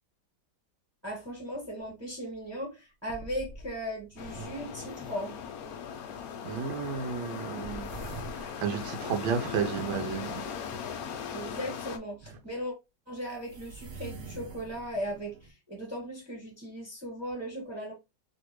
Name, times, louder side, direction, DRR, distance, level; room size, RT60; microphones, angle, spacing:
voice 1, 1.0-5.3 11.3-12.7 13.1-17.9, equal, 10° right, 1.6 m, -37 dB
sound 1, 1.8-1.9 2.4-2.5 3.1-5.6 7.6-10.0 12.2-12.3 13.3-15.5, right 3 dB, 70° right, 0.7 m, -46 dB
sound 2, 4.2-12.0, left 7 dB, 75° left, 0.8 m, -39 dB
voice 2, 6.4-8.0 8.4-10.4, right 6 dB, 90° right, 1.5 m, -32 dB
3.3 x 2.9 x 2.9 m
omnidirectional pair, 2.1 m